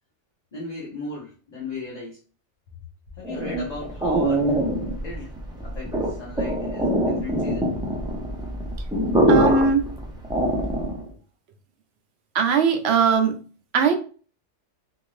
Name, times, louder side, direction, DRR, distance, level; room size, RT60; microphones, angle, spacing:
voice 1, 0.5-2.2 3.2-4.6 5.0-5.3 5.6-7.7, left 3 dB, 40° left, -4 dB, 0.7 m, -36 dB
sound 1, 3.2-11.1, right 1 dB, 5° right, 0.4 m, -24 dB
voice 2, 9.3-9.8 12.3-13.4 13.7-14.0, right 5 dB, 70° right, 5 dB, 0.8 m, -19 dB
2.7 x 2.5 x 3.1 m, 0.38 s
omnidirectional pair, 1.2 m